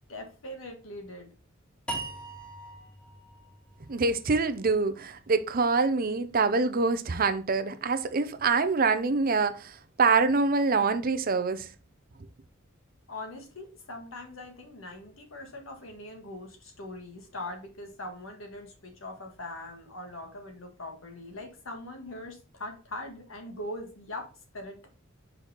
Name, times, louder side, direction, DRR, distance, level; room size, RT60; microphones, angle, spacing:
voice 1, 0.1-1.3 13.1-24.9, left 1 dB, 75° left, 1.8 m, -41 dB
sound 1, 1.9-5.1, right 2 dB, 5° left, 1.3 m, -41 dB
voice 2, 3.9-11.7, right 4 dB, 45° right, 0.6 m, -25 dB
5.4 x 4.5 x 4.2 m
head